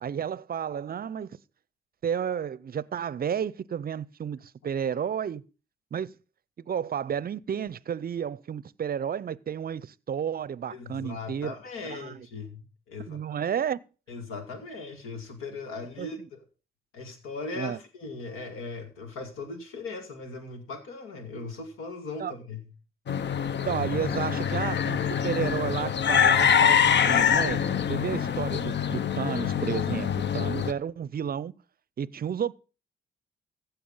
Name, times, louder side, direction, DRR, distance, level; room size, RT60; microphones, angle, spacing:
voice 1, 0.0-1.3 2.0-5.4 5.9-6.1 6.7-11.5 11.9-12.3 13.1-13.8 16.0-16.1 17.5-17.8 22.2-22.3 23.6-27.6 27.9-30.1 30.3-31.5 32.0-32.5, right 8 dB, 45° right, 0.6 m, -31 dB
voice 2, 10.7-12.6 12.9-13.4 14.1-16.4 16.9-22.7, left 3 dB, 85° left, 2.1 m, -39 dB
sound 1, 23.1-30.7, left 8 dB, 55° left, 0.7 m, -25 dB
15.5 x 5.8 x 5.5 m
supercardioid pair, 50°, 21 cm